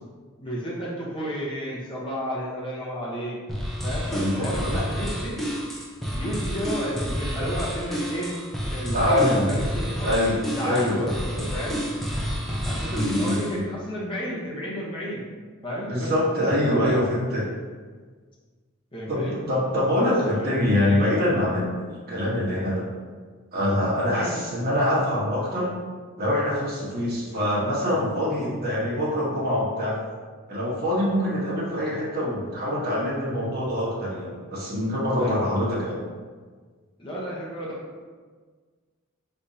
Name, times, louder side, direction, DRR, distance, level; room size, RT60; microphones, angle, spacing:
voice 1, 0.4-3.4 3.8-5.4 6.1-8.3 8.7-10.2 10.6-11.1 11.5-11.9 12.6-15.2 15.6-16.1 16.6-17.1 18.9-19.3 20.0-20.5 24.1-24.3 35.2-35.4 37.0-37.8, equal, 25° left, -6 dB, 1.0 m, -31 dB
sound 1, 3.5-13.6, equal, ahead, 0.6 m, -29 dB
voice 2, 4.1-4.8 8.9-9.5 10.0-10.4 10.6-11.5 12.9-13.6 15.9-17.4 19.1-22.8 23.5-25.7 26.2-29.9 30.5-36.0, left 1 dB, 50° right, -6 dB, 1.4 m, -24 dB
5.4 x 3.4 x 2.8 m, 1.5 s
head